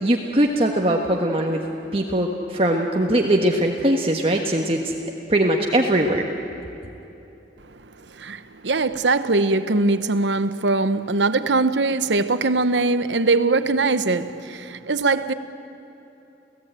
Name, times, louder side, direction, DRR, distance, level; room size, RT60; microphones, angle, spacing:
voice 1, 0.0-1.6 1.9-4.9 5.3-6.3, right 1 dB, 30° right, 1.3 m, -21 dB
voice 2, 8.1-15.3, right 3 dB, 90° right, 1.0 m, -21 dB
30.0 x 17.0 x 9.1 m
head